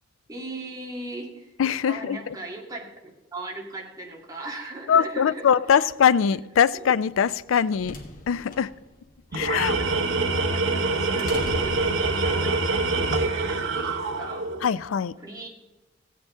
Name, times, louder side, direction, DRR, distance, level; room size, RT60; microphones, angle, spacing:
voice 1, 0.3-1.6 1.9-5.9 6.7-6.8 9.3-14.5 15.2-15.5, right 2 dB, 20° right, -1 dB, 2.2 m, -39 dB
voice 2, 1.6-2.4 4.9-8.0 8.3-8.7 9.3-9.8 14.6-15.1, left 7 dB, 90° left, 17 dB, 0.4 m, -22 dB
sound 1, 7.3-12.6, left 1 dB, 45° left, 1.5 m, -41 dB
Tools, 9.3-14.7, right 3 dB, 70° right, 1.0 m, -25 dB
15.5 x 8.6 x 3.7 m, 1.1 s
head